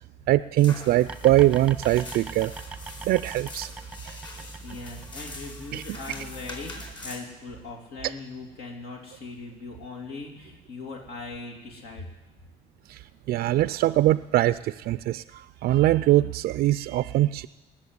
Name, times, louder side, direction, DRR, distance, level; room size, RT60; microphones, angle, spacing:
voice 1, 0.3-2.5 3.0-3.7 4.1-4.2 5.7-5.8 12.9-13.0 13.3-17.5, right 15 dB, 65° right, 14 dB, 0.4 m, -22 dB
sound 1, 0.6-7.2, left 2 dB, 25° left, 4.4 m, -43 dB
sound 2, 1.0-7.0, right 4 dB, 5° right, 0.8 m, -42 dB
voice 2, 4.6-12.1, left 3 dB, 75° left, 1 dB, 2.9 m, -40 dB
19.0 x 7.4 x 9.6 m, 1.1 s
cardioid pair, 110°, 17 cm